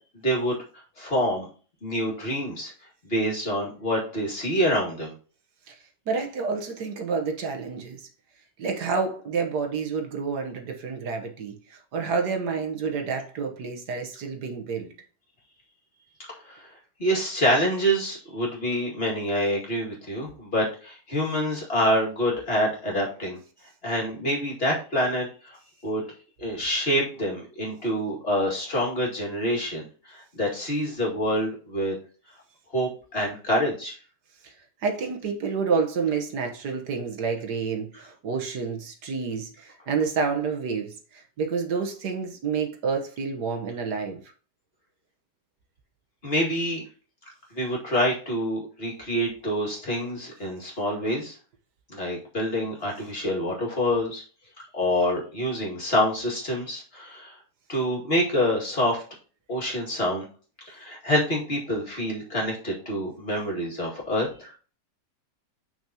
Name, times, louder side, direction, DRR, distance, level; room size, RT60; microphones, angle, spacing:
voice 1, 0.2-0.6 1.0-1.5 1.8-2.7 3.0-5.1 16.4-16.7 17.0-23.4 23.8-25.6 25.8-26.0 26.4-32.0 32.7-34.0 46.2-46.8 47.5-51.4 51.9-54.2 54.7-57.4 57.7-59.0 59.5-60.2 60.7-64.5, equal, 35° left, 2.3 m, -26 dB
voice 2, 6.1-8.1 8.6-14.9 34.4-34.5 34.8-44.2, right 5 dB, 70° right, 1.7 m, -29 dB
7.0 x 6.1 x 2.9 m
omnidirectional pair, 1.8 m